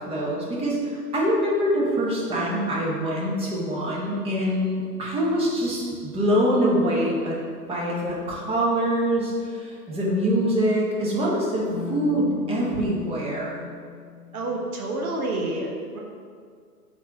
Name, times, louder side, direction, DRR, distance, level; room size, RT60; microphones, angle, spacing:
voice 1, 0.0-7.4 7.7-13.6, equal, 10° right, -4 dB, 1.0 m, -24 dB
sound 1, 1.8-4.2 7.2-7.3 8.1-8.6 9.2-10.1 11.7-14.7, left 6 dB, 55° left, 0.6 m, -40 dB
voice 2, 14.3-16.0, right 2 dB, 60° right, 0 dB, 1.1 m, -29 dB
4.2 x 4.1 x 5.5 m, 2.1 s
figure-of-eight pair, 120°, 49 cm